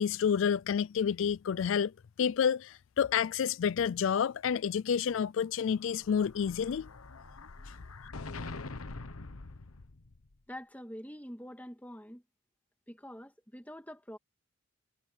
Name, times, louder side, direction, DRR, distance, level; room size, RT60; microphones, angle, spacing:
voice 1, 0.0-1.9 2.2-6.9, left 7 dB, 65° left, 0.3 m, -29 dB
Explosion, 5.7-10.3, left 3 dB, 85° left, 1.2 m, -44 dB
voice 2, 10.5-12.2 12.9-14.2, equal, 5° left, 1.9 m, -45 dB
head